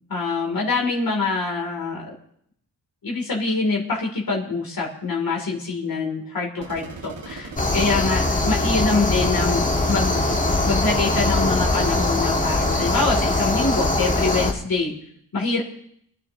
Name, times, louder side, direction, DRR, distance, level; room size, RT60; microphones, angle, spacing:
voice 1, 0.1-2.0 3.0-10.1 10.6-14.9 15.3-15.6, left 3 dB, 60° left, -1 dB, 3.0 m, -25 dB
sound 1, 6.6-12.0, right 3 dB, 90° right, 2.0 m, -38 dB
sound 2, 7.6-14.5, left 2 dB, 20° left, 1.6 m, -22 dB
26.5 x 11.0 x 2.9 m, 0.69 s
wide cardioid pair, 125°, 40 cm